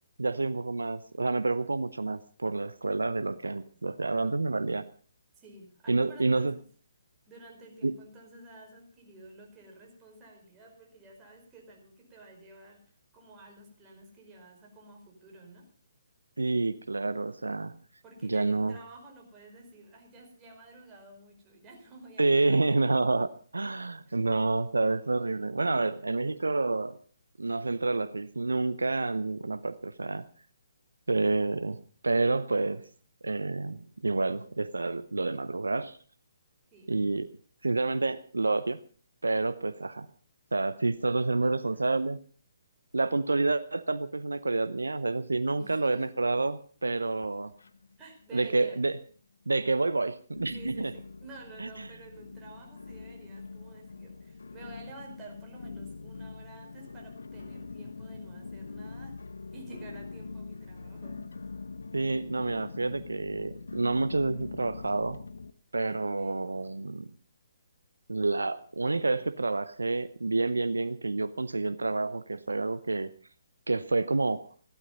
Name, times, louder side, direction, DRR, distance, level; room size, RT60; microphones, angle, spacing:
voice 1, 0.2-4.9 5.9-6.5 7.8-7.9 16.4-17.8 18.2-18.8 22.2-27.0 27.4-30.3 31.1-32.8 33.2-36.0 36.9-37.3 37.6-38.8 39.2-40.1 40.5-42.2 42.9-47.5 48.3-48.9 49.5-50.9 51.6-51.7 61.9-65.2 65.7-67.1 68.1-73.1 73.7-74.5, right 3 dB, 80° right, 15 dB, 0.7 m, -28 dB
voice 2, 5.4-6.6 7.3-12.8 13.1-15.7 18.0-23.0 24.1-24.3 36.7-36.9 41.4-41.9 45.6-46.1 48.0-48.8 50.5-59.2 59.5-61.3 65.9-66.5, right 2 dB, 20° right, 0 dB, 5.1 m, -51 dB
sound 1, 47.1-48.1 48.4-49.0 49.5-49.6 50.3-65.5, left 4 dB, 70° left, 0.8 m, -43 dB
15.0 x 12.5 x 5.4 m, 0.43 s
figure-of-eight pair, 135°, 0 cm